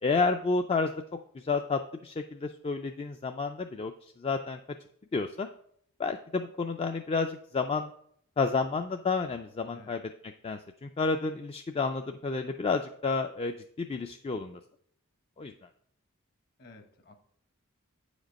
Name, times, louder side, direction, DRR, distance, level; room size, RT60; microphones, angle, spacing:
voice 1, 0.0-0.9 1.3-4.6 5.1-5.5 6.0-7.9 8.4-14.6 15.4-15.5, left 4 dB, 25° left, 5 dB, 0.3 m, -30 dB
voice 2, 16.6-17.1, left 2 dB, 45° left, 7 dB, 1.1 m, -53 dB
8.4 x 5.1 x 5.2 m, 0.66 s
head